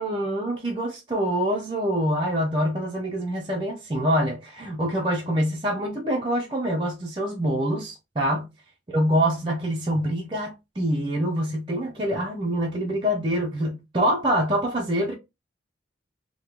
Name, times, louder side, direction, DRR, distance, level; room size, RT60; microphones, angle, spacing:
voice 1, 0.0-8.5 8.9-15.1, equal, 25° right, 0.5 m, -25 dB
3.5 x 2.1 x 2.9 m
head